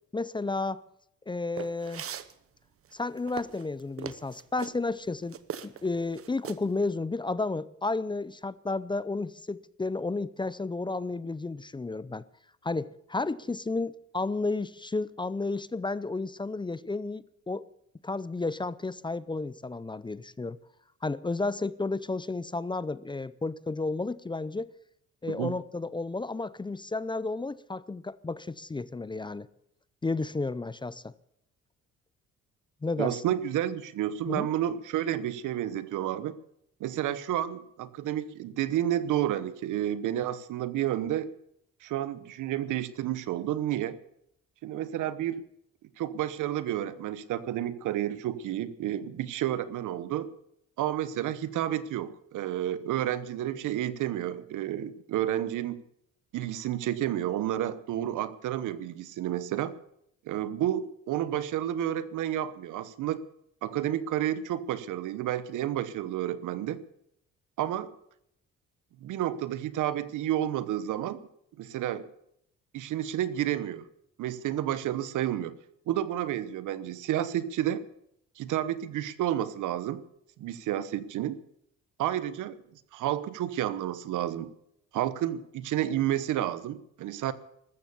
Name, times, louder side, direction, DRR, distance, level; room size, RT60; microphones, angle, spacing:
voice 1, 0.1-0.8 1.3-2.1 2.9-12.2 12.6-17.7 18.0-20.6 21.0-24.7 25.2-29.5 30.0-31.1 32.8-33.2 34.3-34.5, left 3 dB, 15° left, 0.5 m, -32 dB
sound 1, 1.6-2.3 2.9-4.8 5.3-5.9 6.1-6.7, right 8 dB, 50° right, 1.0 m, -39 dB
voice 2, 33.0-36.3 36.8-41.3 41.8-44.0 44.6-45.4 46.0-50.3 50.8-55.8 56.3-59.7 60.3-63.2 63.6-66.8 67.6-67.9 69.0-71.2 71.6-72.1 72.7-73.8 74.2-75.5 75.9-77.8 78.4-80.0 80.4-81.4 82.0-84.5 84.9-87.3, right 12 dB, 85° right, 1.0 m, -30 dB
13.5 x 13.5 x 7.0 m
cardioid pair, 90°, 30 cm